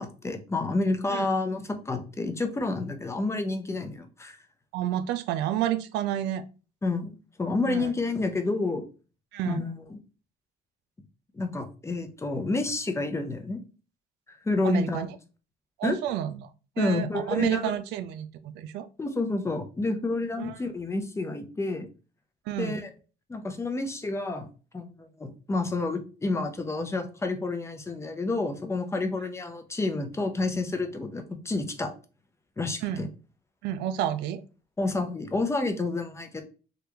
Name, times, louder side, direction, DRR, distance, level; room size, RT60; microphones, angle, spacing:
voice 1, 0.0-4.4 6.8-8.8 9.5-10.0 11.3-13.6 14.3-15.1 15.8-16.0 16.8-17.7 19.0-21.9 22.6-22.9 23.3-24.5 24.7-31.9 32.6-33.1 34.8-36.4, left 3 dB, 15° left, 6 dB, 0.6 m, -29 dB
voice 2, 4.7-6.4 7.7-7.9 9.3-9.6 14.6-15.1 15.8-16.5 16.8-18.9 20.4-20.6 22.5-22.8 32.8-33.1 33.6-34.4, right 11 dB, 85° right, 12 dB, 0.4 m, -30 dB
3.3 x 2.4 x 3.0 m, 0.35 s
cardioid pair, 110°, 17 cm